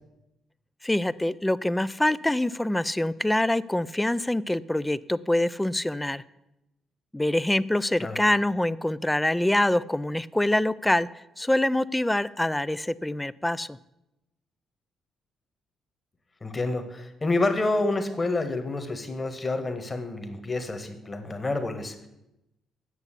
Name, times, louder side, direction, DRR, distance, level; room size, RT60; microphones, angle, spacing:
voice 1, 0.8-6.2 7.1-11.1 11.4-13.8, left 1 dB, 10° left, 17 dB, 0.3 m, -25 dB
voice 2, 16.4-22.1, left 2 dB, 25° left, 7 dB, 1.5 m, -28 dB
8.2 x 6.9 x 8.2 m, 0.90 s
cardioid pair, 90°, 0 cm